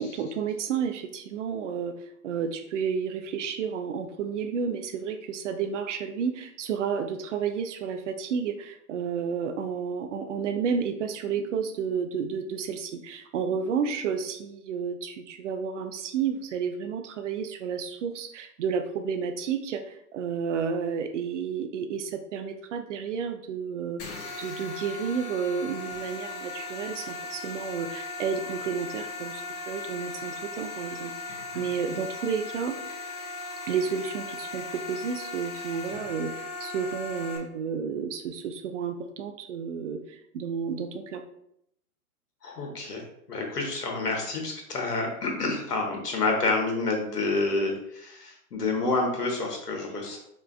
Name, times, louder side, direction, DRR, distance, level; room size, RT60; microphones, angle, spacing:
voice 1, 0.0-1.9 2.2-24.0 24.4-32.8 33.7-41.2, right 6 dB, 50° right, 7 dB, 0.6 m, -31 dB
sound 1, 24.0-37.4, left 3 dB, 35° left, 1.0 m, -38 dB
voice 2, 42.4-50.2, left 3 dB, 85° left, 1 dB, 1.4 m, -28 dB
4.9 x 3.3 x 2.3 m, 0.74 s
hypercardioid pair, 125°, 46 cm